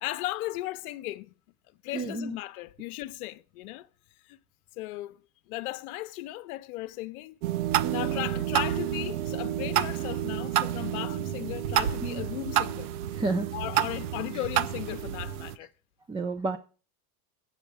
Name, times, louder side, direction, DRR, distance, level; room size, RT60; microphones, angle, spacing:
voice 1, 0.0-1.3 1.8-3.9 4.2-4.4 4.8-5.2 5.5-7.4 7.9-12.9 13.5-15.7, left 17 dB, 80° left, 0.6 m, -36 dB
voice 2, 1.9-2.4 7.8-8.2 12.0-12.3 13.1-13.5 14.3-14.4 16.1-16.6, right 3 dB, 10° right, 0.4 m, -31 dB
sound 1, 7.4-15.6, right 12 dB, 85° right, 0.7 m, -29 dB
8.7 x 8.0 x 4.7 m
supercardioid pair, 105°, 44 cm